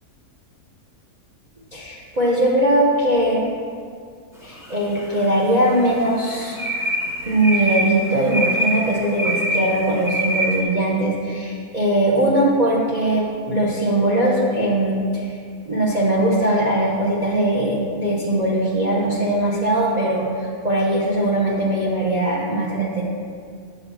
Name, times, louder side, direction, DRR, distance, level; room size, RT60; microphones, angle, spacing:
voice 1, 1.7-3.5 4.4-6.6 7.3-15.4 15.6-23.0, right 1 dB, 30° right, -4 dB, 0.9 m, -20 dB
sound 1, 4.6-5.3 5.7-10.6, right 1 dB, ahead, 0.8 m, -25 dB
8.7 x 4.1 x 7.0 m, 2.2 s
omnidirectional pair, 1.7 m